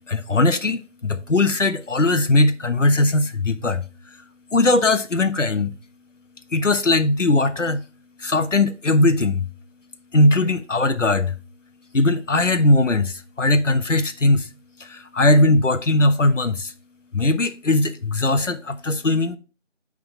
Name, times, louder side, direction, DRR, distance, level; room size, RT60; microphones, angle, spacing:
voice 1, 0.0-4.2 4.5-5.7 6.5-7.8 8.2-9.5 10.1-11.4 11.9-14.5 14.8-16.7 17.1-19.4, left 2 dB, 75° left, 1.2 m, -19 dB
9.4 x 3.9 x 4.3 m
figure-of-eight pair, 175°, 38 cm